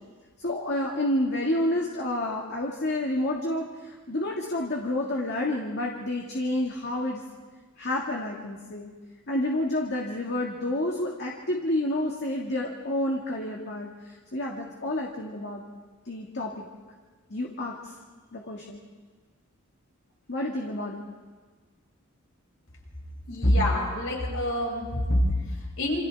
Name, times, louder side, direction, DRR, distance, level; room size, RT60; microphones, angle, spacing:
voice 1, 0.4-7.2 7.8-8.9 9.3-15.6 16.1-16.5 17.3-17.8 18.3-18.8 20.3-21.0, left 1 dB, 55° left, -1 dB, 2.0 m, -29 dB
voice 2, 23.3-26.0, left 1 dB, 75° left, -3 dB, 7.3 m, -25 dB
28.0 x 27.5 x 3.5 m, 1.4 s
head